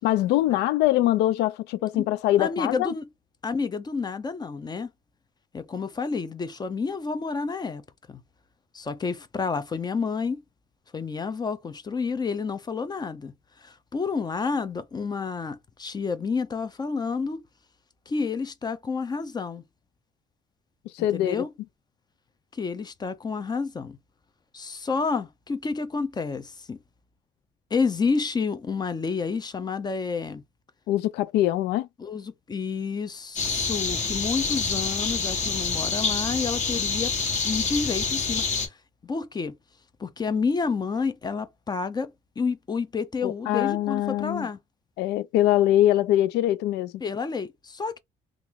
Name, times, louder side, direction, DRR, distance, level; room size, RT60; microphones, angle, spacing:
voice 1, 0.0-2.9 20.9-21.4 30.9-31.9 43.2-44.5 45.0-46.9, left 14 dB, 85° left, 0.4 m, -23 dB
voice 2, 2.4-3.1 3.4-4.9 5.5-7.8 8.1-8.2 8.7-10.4 10.9-17.4 18.1-19.6 21.1-21.5 22.5-24.0 24.5-26.8 27.7-30.4 32.0-37.1 37.4-38.8 39.0-39.6 40.0-44.6 47.0-48.0, left 5 dB, 25° left, 0.5 m, -29 dB
sound 1, 33.4-38.7, left 4 dB, 45° left, 1.4 m, -27 dB
2.9 x 2.5 x 3.6 m
cardioid pair, 110°, 17 cm